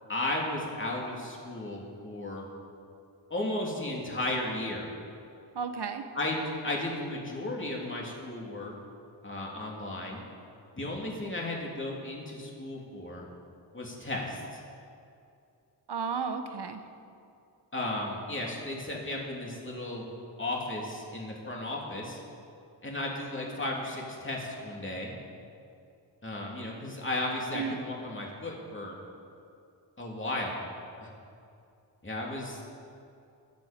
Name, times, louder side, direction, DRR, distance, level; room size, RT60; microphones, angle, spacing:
voice 1, 0.1-2.5 3.3-4.9 6.1-8.7 9.2-10.2 10.8-13.2 13.7-14.6 17.7-20.1 20.4-22.2 22.8-25.1 26.2-29.0 30.0-30.6 31.0-31.1 32.0-32.6, left 1 dB, 25° left, -2 dB, 2.9 m, -34 dB
voice 2, 5.5-6.0 15.9-16.8 27.5-27.8, right 6 dB, 65° right, 7 dB, 1.1 m, -33 dB
21.5 x 8.2 x 5.2 m, 2.5 s
wide cardioid pair, 90°, 43 cm